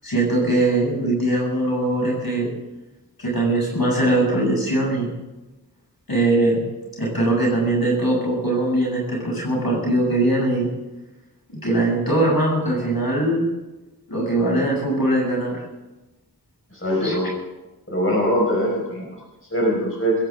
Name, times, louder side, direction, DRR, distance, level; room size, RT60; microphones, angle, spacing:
voice 1, 0.0-2.5 3.2-5.1 6.1-6.7 7.0-10.7 11.6-13.5 14.1-15.6 17.0-17.1, right 2 dB, 70° left, -3 dB, 7.5 m, -21 dB
voice 2, 16.7-17.3 17.9-19.1 19.5-20.1, equal, 35° left, -2 dB, 5.3 m, -22 dB
21.0 x 17.5 x 3.7 m, 1.1 s
wide cardioid pair, 45°, 37 cm